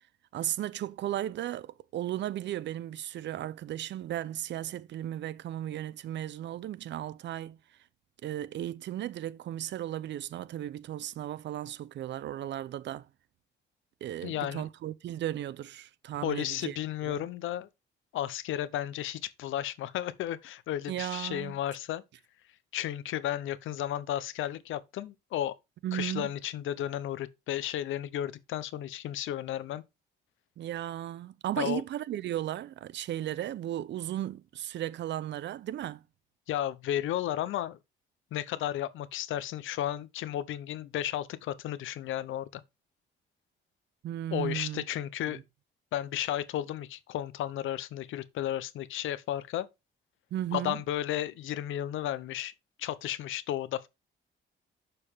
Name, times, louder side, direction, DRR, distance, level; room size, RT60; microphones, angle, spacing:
voice 1, 0.3-7.6 8.2-13.1 14.0-16.8 17.0-17.3 20.9-21.6 25.8-26.3 30.6-36.0 44.0-44.8 45.3-45.4 50.3-50.8, right 12 dB, 65° right, 0.6 m, -35 dB
voice 2, 14.2-14.7 16.2-17.7 18.1-22.0 22.7-25.5 25.9-29.8 31.6-31.8 36.5-37.8 38.3-42.6 44.3-45.4 45.9-49.7 50.5-52.5 52.8-53.9, left 12 dB, 80° left, 0.8 m, -33 dB
6.8 x 6.7 x 3.5 m
cardioid pair, 90°, 20 cm